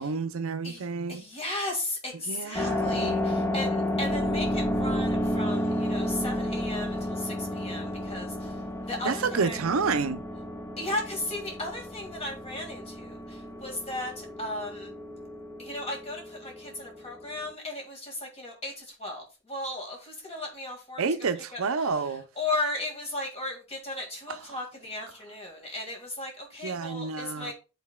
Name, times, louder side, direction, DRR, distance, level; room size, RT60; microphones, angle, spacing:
voice 1, 0.0-1.2 2.3-3.5 4.2-4.3 9.0-10.2 21.0-22.2 24.3-24.4 26.6-27.5, right 4 dB, 70° right, 0.6 m, -30 dB
voice 2, 0.6-9.6 10.8-14.9 15.6-21.0 21.5-27.5, left 2 dB, 30° left, 1.9 m, -36 dB
sound 1, 2.5-17.5, left 1 dB, 10° left, 0.5 m, -31 dB
10.5 x 4.0 x 2.3 m
head